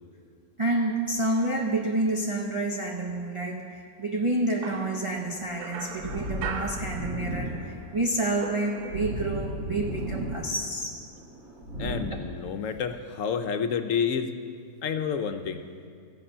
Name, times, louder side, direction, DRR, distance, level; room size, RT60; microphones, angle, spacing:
voice 1, 0.6-11.0, right 2 dB, 40° right, 0 dB, 0.5 m, -29 dB
sound 1, 4.6-7.6 7.9-9.4, right 7 dB, 75° right, 1.2 m, -40 dB
sound 2, 5.1-12.0, equal, 60° right, 3.0 m, -36 dB
voice 2, 11.8-14.3 14.8-15.6, left 7 dB, 65° left, 8 dB, 1.0 m, -29 dB
14.5 x 8.2 x 5.6 m, 2.3 s
omnidirectional pair, 1.6 m